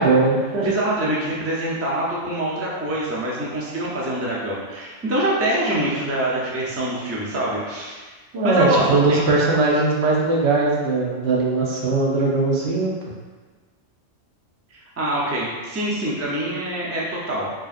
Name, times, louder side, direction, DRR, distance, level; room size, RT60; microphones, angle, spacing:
voice 1, 0.0-0.7 8.3-12.9, right 3 dB, 65° right, -4 dB, 1.0 m, -19 dB
voice 2, 0.6-8.0 8.4-9.3 14.7-17.6, right 1 dB, 20° right, -5 dB, 0.4 m, -25 dB
4.7 x 2.9 x 2.5 m, 1.4 s
omnidirectional pair, 1.2 m